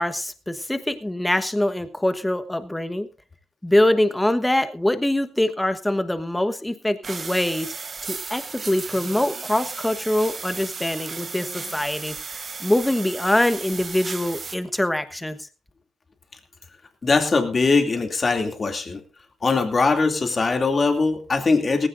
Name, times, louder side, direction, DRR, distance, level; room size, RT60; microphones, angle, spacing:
voice 1, 0.0-3.1 3.6-7.7 8.0-15.4, left 1 dB, 10° left, 10 dB, 1.3 m, -24 dB
sound 1, 7.0-14.5, right 4 dB, 35° right, 1.2 m, -35 dB
voice 2, 17.0-19.0 19.4-21.9, left 4 dB, 35° left, 5 dB, 2.7 m, -21 dB
18.0 x 15.5 x 2.6 m, 0.35 s
cardioid pair, 90°, 0 cm